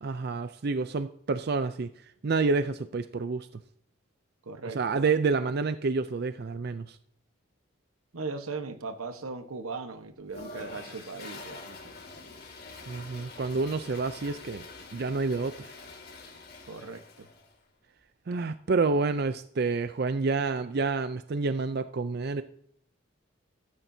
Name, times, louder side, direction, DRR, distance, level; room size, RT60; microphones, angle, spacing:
voice 1, 0.0-1.9 2.2-3.5 4.6-7.0 12.9-14.6 14.9-15.7 18.3-22.4, right 4 dB, 50° right, 11 dB, 0.4 m, -28 dB
voice 2, 4.4-5.0 8.1-12.0 16.7-17.3, right 4 dB, 90° right, 8 dB, 1.2 m, -38 dB
Toilet flush, 10.3-17.5, left 3 dB, 50° left, 2.4 m, -46 dB
15.0 x 13.5 x 2.7 m, 0.66 s
head